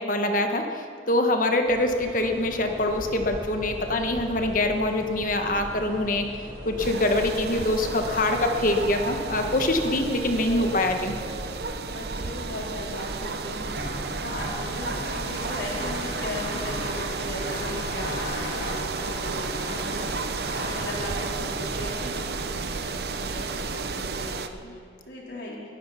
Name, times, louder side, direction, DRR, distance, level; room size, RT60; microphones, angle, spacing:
voice 1, 0.0-6.3 6.6-11.1, left 1 dB, 45° left, 4 dB, 1.4 m, -24 dB
sound 1, 1.6-11.4, equal, 45° right, 5.2 m, -40 dB
sound 2, 6.8-24.5, right 4 dB, 60° right, 0.8 m, -32 dB
voice 2, 7.4-7.8 11.8-20.1 20.6-25.7, left 1 dB, 70° left, -4 dB, 4.0 m, -38 dB
sound 3, 13.4-22.8, left 2 dB, 85° left, 4.9 m, -38 dB
16.0 x 13.5 x 5.8 m, 2.3 s
head